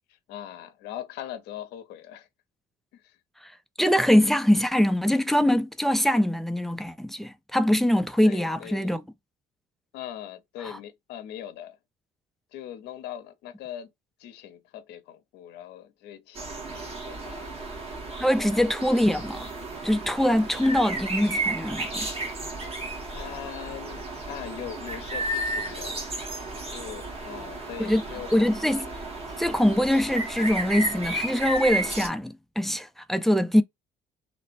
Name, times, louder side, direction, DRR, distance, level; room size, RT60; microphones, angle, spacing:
voice 1, 0.1-2.3 2.9-3.2 8.2-9.0 9.9-11.8 12.5-13.9 14.2-17.5 18.4-18.5 23.1-26.0 26.7-28.4 28.7-28.8, left 11 dB, 80° left, 0.6 m, -41 dB
voice 2, 3.8-9.0 10.6-10.8 18.2-19.5 19.8-22.1 27.8-28.0 28.3-28.8 29.4-33.6, equal, ahead, 0.3 m, -23 dB
sound 1, 16.4-32.1, right 2 dB, 35° right, 1.3 m, -33 dB
3.1 x 2.0 x 2.5 m
cardioid pair, 110°, 17 cm